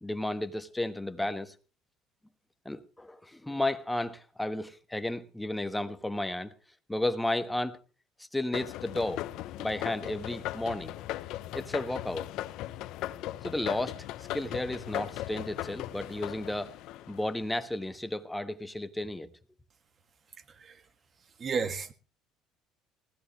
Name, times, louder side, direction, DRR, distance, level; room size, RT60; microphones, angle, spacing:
voice 1, 0.0-1.5 2.6-6.5 6.9-7.8 8.2-9.2 9.6-10.9 11.5-12.3 13.4-14.1 14.3-16.8 17.1-19.3, left 1 dB, 5° left, 1.3 m, -33 dB
sound 1, 8.5-17.6, left 14 dB, 70° left, 0.8 m, -38 dB
voice 2, 21.4-21.9, right 5 dB, 40° right, 1.5 m, -32 dB
19.5 x 15.5 x 3.2 m
supercardioid pair, 95°, 0 cm